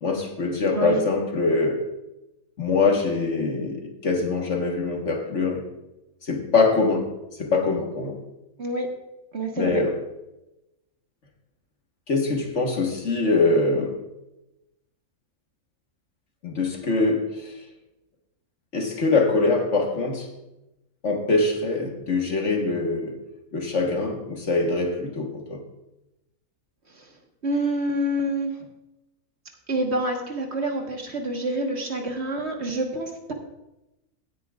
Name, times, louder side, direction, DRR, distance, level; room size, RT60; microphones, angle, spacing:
voice 1, 0.0-1.9 2.6-5.7 6.2-7.1 7.4-8.2 9.6-10.0 12.1-14.0 16.4-17.5 18.7-20.3 21.0-23.2 23.5-25.6, left 3 dB, 55° left, 1.6 m, -23 dB
voice 2, 8.6-8.9 9.3-9.8 27.0-27.1 27.4-28.5 29.7-33.3, right 1 dB, 50° right, 1.7 m, -27 dB
16.5 x 10.0 x 2.4 m
omnidirectional pair, 1.5 m